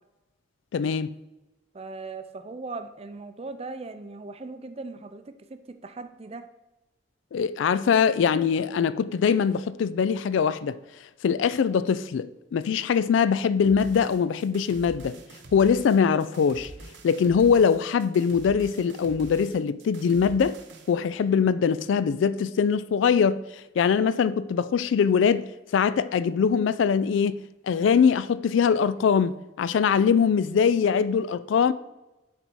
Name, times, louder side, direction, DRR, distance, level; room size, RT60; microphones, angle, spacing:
voice 1, 0.7-1.1 7.3-10.8 11.2-15.2 15.5-16.7 17.0-20.6 20.9-23.4 23.8-25.5 25.7-31.7, left 6 dB, 75° left, 0.3 m, -22 dB
voice 2, 1.7-6.4, right 3 dB, 30° right, 0.5 m, -39 dB
sound 1, 13.6-21.0, right 1 dB, 65° right, 0.9 m, -46 dB
7.4 x 4.1 x 4.6 m
head